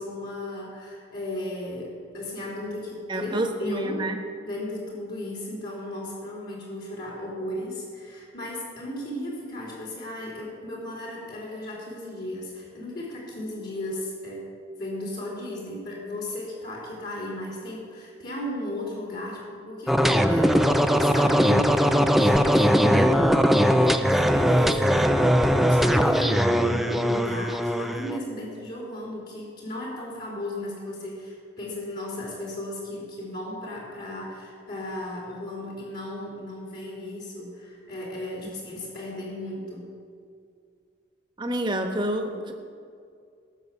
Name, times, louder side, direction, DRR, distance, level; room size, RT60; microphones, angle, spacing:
voice 1, 0.0-3.3 3.6-4.0 4.4-14.5 14.8-22.8 23.9-39.9, left 1 dB, 50° left, -3 dB, 3.1 m, -35 dB
voice 2, 3.1-4.2 22.8-23.2 41.4-42.5, right 1 dB, 25° right, 4 dB, 1.2 m, -28 dB
sound 1, 19.9-28.2, equal, ahead, 0.4 m, -20 dB
18.0 x 7.1 x 6.9 m, 2.3 s
head